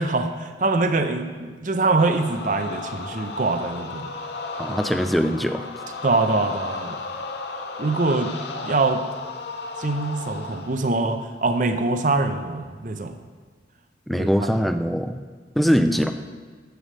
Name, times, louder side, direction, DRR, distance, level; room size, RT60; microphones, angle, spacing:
voice 1, 0.0-4.1 4.7-4.8 6.0-7.0 7.8-8.3 8.6-9.0 9.8-13.2 14.2-14.5, right 3 dB, 45° right, 7 dB, 0.6 m, -24 dB
sound 1, 2.0-10.9, left 3 dB, 65° left, 0.7 m, -34 dB
voice 2, 4.6-5.7 14.1-15.2 15.6-16.1, equal, ahead, 8 dB, 0.3 m, -22 dB
12.5 x 7.6 x 3.4 m, 1.5 s
head